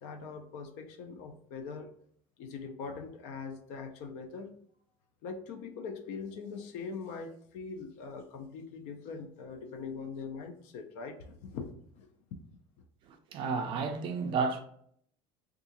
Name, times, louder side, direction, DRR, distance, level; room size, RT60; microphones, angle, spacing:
voice 1, 0.0-2.0 2.4-4.6 5.2-12.1, left 5 dB, 60° left, 0.5 m, -42 dB
voice 2, 13.1-14.6, right 5 dB, 35° right, 0.4 m, -32 dB
3.6 x 2.4 x 2.8 m
cardioid pair, 180°, 14 cm